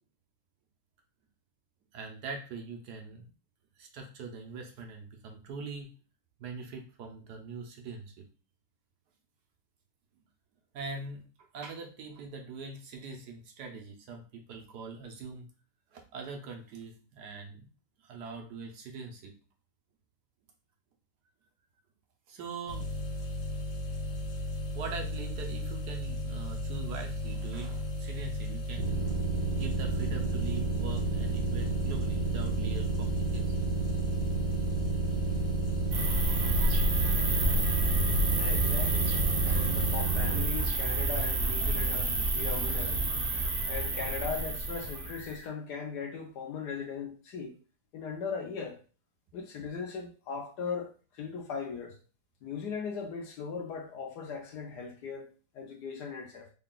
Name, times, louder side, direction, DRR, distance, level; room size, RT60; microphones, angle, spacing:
voice 1, 1.9-3.3 3.8-5.9 6.4-8.1 10.7-11.2 11.5-15.5 15.9-17.7 18.1-19.3 22.3-22.9 24.7-29.1 29.6-33.4, right 4 dB, 70° right, 1.3 m, -42 dB
sound 1, 22.7-40.0, left 1 dB, 55° left, 1.1 m, -35 dB
sound 2, 28.8-40.4, right 4 dB, 90° right, 1.5 m, -31 dB
sound 3, 35.9-45.3, right 2 dB, 50° right, 0.6 m, -29 dB
voice 2, 38.3-43.0 43.7-47.6 47.9-48.8 49.3-52.0 52.4-56.5, left 5 dB, 70° left, 1.3 m, -39 dB
3.7 x 2.3 x 3.7 m
omnidirectional pair, 1.8 m